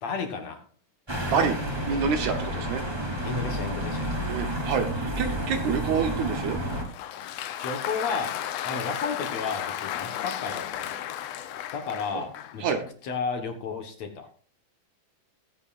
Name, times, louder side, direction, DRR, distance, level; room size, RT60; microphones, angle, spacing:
voice 1, 0.0-0.6 2.5-2.8 3.2-4.2 7.6-10.9 11.7-14.3, left 5 dB, 60° left, 5 dB, 2.2 m, -33 dB
sound 1, 1.1-6.8, right 1 dB, 10° right, 2.1 m, -30 dB
voice 2, 1.9-2.8 4.3-6.6 12.1-12.3 12.6-12.8, right 6 dB, 70° right, 7 dB, 2.1 m, -27 dB
Applause, 6.5-12.7, left 11 dB, 80° left, 1.5 m, -34 dB
21.0 x 8.2 x 2.5 m, 0.43 s
omnidirectional pair, 3.9 m